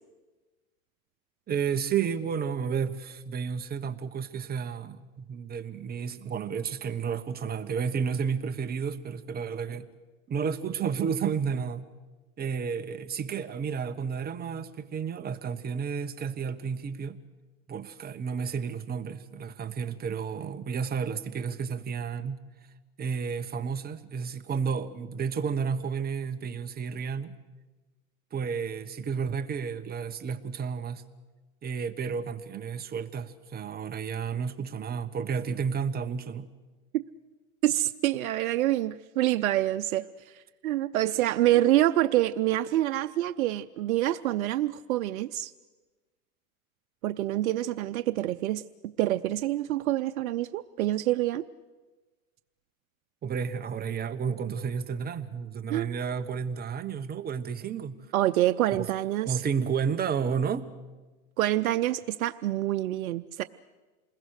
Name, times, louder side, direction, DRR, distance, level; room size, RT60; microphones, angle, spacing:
voice 1, 1.5-9.9 10.3-11.9 12.4-17.2 17.7-22.4 23.0-27.3 28.3-31.0 31.6-36.5 53.2-58.0 58.7-58.9 59.2-60.7, right 6 dB, 25° right, 1.3 m, -31 dB
voice 2, 37.6-40.0 40.6-45.5 47.0-51.4 55.7-55.9 58.1-59.4 61.4-63.4, right 14 dB, 90° right, 0.7 m, -26 dB
27.5 x 21.0 x 6.5 m
supercardioid pair, 125°, 41 cm